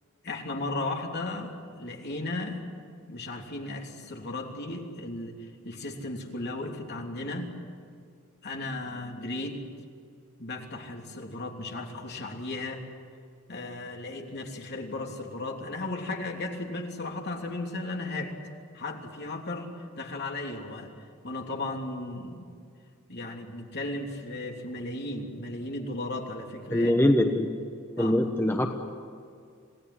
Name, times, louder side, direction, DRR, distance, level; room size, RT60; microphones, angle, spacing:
voice 1, 0.2-2.6 3.1-7.6 8.4-9.6 10.4-12.8 13.5-18.3 18.7-22.6 23.1-27.0 28.0-28.2, left 2 dB, 50° left, 1 dB, 3.1 m, -35 dB
voice 2, 26.7-27.5 28.0-28.7, left 1 dB, 10° left, 3 dB, 1.2 m, -23 dB
27.5 x 18.0 x 9.8 m, 2.2 s
head